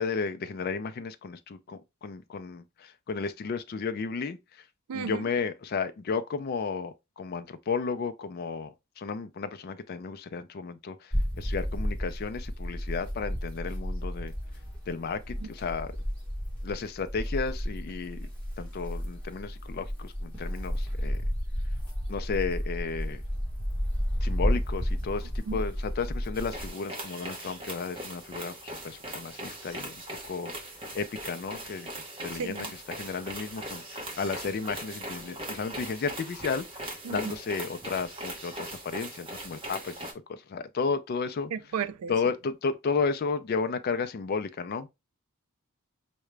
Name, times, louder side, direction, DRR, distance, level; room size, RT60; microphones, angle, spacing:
voice 1, 0.0-4.6 4.9-14.3 14.9-16.0 16.6-18.3 18.6-21.2 22.1-23.2 24.2-30.0 30.2-40.0 40.3-41.5 42.1-44.9, left 5 dB, 45° left, 0.3 m, -33 dB
voice 2, 4.9-5.2 25.5-25.6 32.3-32.7 37.0-37.3 41.5-42.1, right 6 dB, 85° right, 0.4 m, -34 dB
sound 1, 11.1-26.7, equal, 5° left, 1.0 m, -32 dB
sound 2, 26.3-40.1, right 1 dB, 25° right, 0.9 m, -40 dB
4.7 x 2.1 x 3.2 m
head